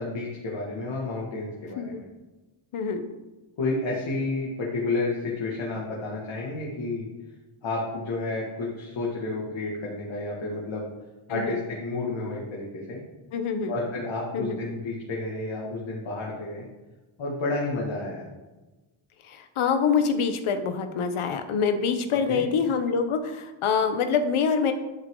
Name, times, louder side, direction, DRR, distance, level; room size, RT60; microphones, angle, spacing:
voice 1, 0.0-2.0 3.6-7.1 7.6-10.9 11.3-13.0 13.7-16.7 17.2-18.3 22.3-22.4, left 2 dB, 70° left, -4 dB, 2.2 m, -31 dB
voice 2, 2.7-3.1 11.3-11.6 13.3-13.7 14.3-14.6 19.2-24.7, left 6 dB, 85° left, 8 dB, 1.1 m, -25 dB
11.0 x 8.1 x 3.9 m, 1.2 s
wide cardioid pair, 125°, 48 cm